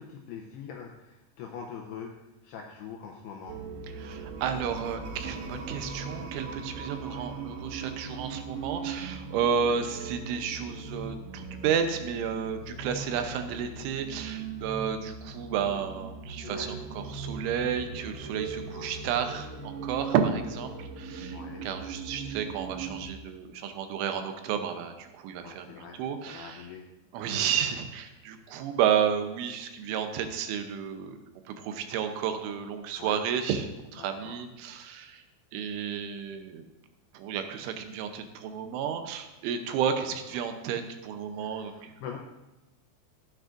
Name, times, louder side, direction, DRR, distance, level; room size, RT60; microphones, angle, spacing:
voice 1, 0.0-2.2 2.4-3.6 7.0-7.3 9.6-9.7 13.1-13.4 16.3-16.7 18.7-19.0 21.3-21.7 25.4-26.9 33.0-33.2 34.0-34.4 34.7-34.8 40.1-40.4 41.3-42.2, left 6 dB, 90° left, 1 dB, 2.3 m, -44 dB
sound 1, 3.5-23.1, right 4 dB, 70° right, 2.4 m, -39 dB
voice 2, 4.0-26.7 27.1-31.2 31.5-35.2 35.5-36.6 37.1-41.9, right 7 dB, 90° right, 7 dB, 3.3 m, -31 dB
14.0 x 9.1 x 2.6 m, 1.0 s
omnidirectional pair, 5.4 m